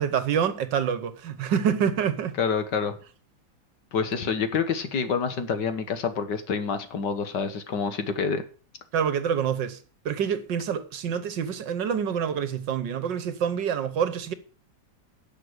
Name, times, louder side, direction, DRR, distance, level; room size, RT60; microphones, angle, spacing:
voice 1, 0.0-2.4 8.9-9.8 10.0-14.3, right 8 dB, 65° right, 1.6 m, -26 dB
voice 2, 2.4-3.0 3.9-8.4, left 5 dB, 60° left, 1.8 m, -27 dB
11.0 x 6.9 x 8.1 m
omnidirectional pair, 2.2 m